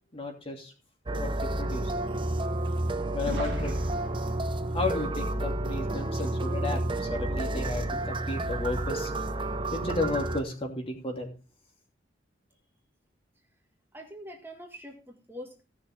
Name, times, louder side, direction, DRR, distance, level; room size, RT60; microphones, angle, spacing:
voice 1, 0.1-0.7 1.1-1.9 3.1-3.8 4.7-9.1 9.7-11.3, left 2 dB, 30° left, 2 dB, 2.8 m, -33 dB
sound 1, 1.1-10.4, right 1 dB, 25° right, 0.7 m, -30 dB
Boom, 3.3-7.1, right 1 dB, 70° right, 2.2 m, -43 dB
voice 2, 13.9-15.6, equal, 10° right, 2 dB, 1.9 m, -44 dB
17.0 x 6.5 x 3.6 m, 0.33 s
head